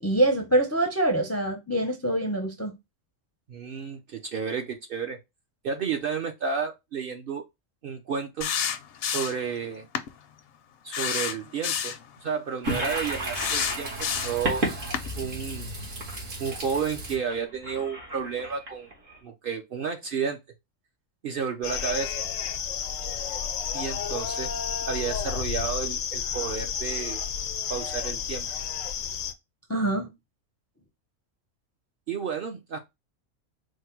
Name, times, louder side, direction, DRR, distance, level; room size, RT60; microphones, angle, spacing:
voice 1, 0.0-2.8 29.7-30.1, right 1 dB, 20° left, 0.4 m, -25 dB
voice 2, 3.5-5.2 5.6-7.4 7.8-8.5 9.0-9.9 10.8-14.6 15.2-15.7 16.4-18.9 19.2-20.4 21.2-22.1 23.7-24.5 24.9-27.2 27.7-28.5 32.1-32.8, right 6 dB, 55° right, 0.7 m, -31 dB
sound 1, 8.4-9.5 9.9-10.1 10.9-12.0 13.3-14.5 14.9-15.1, left 8 dB, 60° left, 0.7 m, -29 dB
Toilet flush, 12.6-19.2, right 1 dB, 75° right, 1.9 m, -33 dB
sound 2, 21.6-29.3, left 7 dB, 90° left, 1.0 m, -31 dB
4.7 x 2.1 x 4.4 m
omnidirectional pair, 1.3 m